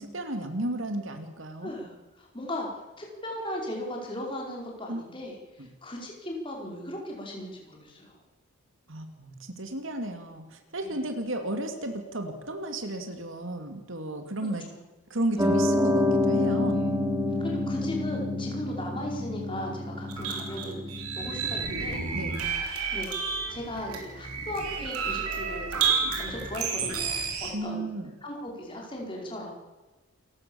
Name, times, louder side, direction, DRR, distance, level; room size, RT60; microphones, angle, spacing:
voice 1, 0.0-1.7 4.9-5.0 5.6-5.7 8.9-14.6 15.1-16.9 22.1-22.3 27.5-28.1, right 1 dB, 60° right, 6 dB, 2.6 m, -33 dB
voice 2, 1.6-8.1 10.8-11.0 15.3-15.5 16.7-16.8 17.4-22.0 22.9-27.9 28.2-29.5, left 1 dB, 25° left, 0 dB, 4.8 m, -37 dB
Piano, 15.4-21.9, left 2 dB, 15° right, 3.0 m, -28 dB
sound 1, 20.1-27.5, right 5 dB, 90° right, 4.2 m, -31 dB
28.5 x 15.0 x 7.1 m, 1.2 s
head